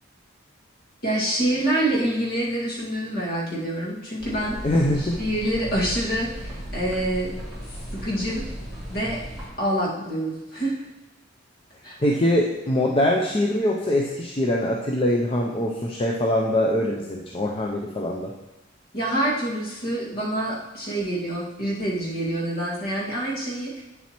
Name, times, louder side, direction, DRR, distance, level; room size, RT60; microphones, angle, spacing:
voice 1, 1.0-4.6 5.0-7.3 7.9-8.4 8.9-9.2 9.6-10.9 11.8-12.0 18.9-23.8, right 1 dB, 50° left, -5 dB, 2.0 m, -26 dB
sound 1, 4.2-9.5, equal, ahead, 2.4 m, -36 dB
voice 2, 4.6-5.2 12.0-18.3, left 1 dB, 30° left, -1 dB, 0.5 m, -23 dB
8.4 x 7.2 x 3.0 m, 1.0 s
head